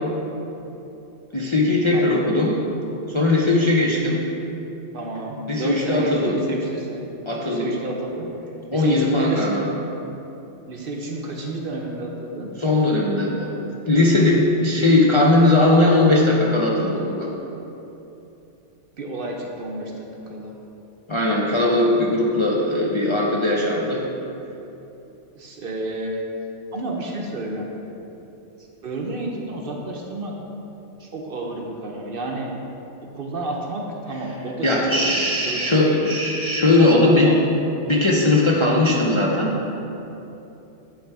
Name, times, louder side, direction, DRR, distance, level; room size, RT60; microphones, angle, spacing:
voice 1, 1.3-2.6 3.1-4.2 5.5-6.4 7.3-7.7 8.7-9.7 12.6-17.3 21.1-24.0 34.6-37.3 37.9-39.5, left 2 dB, 35° left, -4 dB, 0.5 m, -19 dB
voice 2, 1.9-2.2 4.9-7.1 7.4-8.3 8.7-9.5 10.7-12.5 19.0-20.5 25.4-26.2 26.7-27.7 28.8-30.3 31.0-32.5 33.1-35.1 35.4-36.0 36.8-37.3, right 2 dB, 55° right, 0 dB, 0.8 m, -30 dB
9.8 x 3.3 x 4.6 m, 3.0 s
omnidirectional pair, 1.2 m